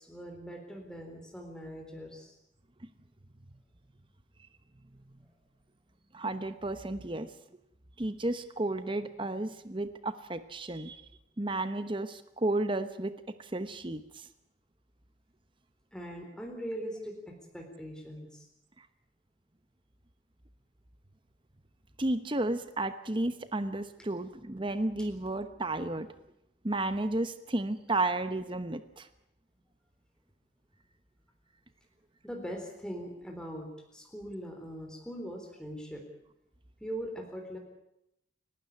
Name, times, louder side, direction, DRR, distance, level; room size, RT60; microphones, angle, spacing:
voice 1, 0.0-2.4 15.9-18.5 32.2-36.0 36.8-37.6, equal, 5° left, 2 dB, 3.8 m, -41 dB
voice 2, 6.1-7.3 8.0-11.0 11.4-14.3 18.8-18.9 22.0-26.1 26.6-29.1, right 2 dB, 25° right, 11 dB, 1.0 m, -33 dB
29.0 x 12.5 x 9.5 m, 0.83 s
head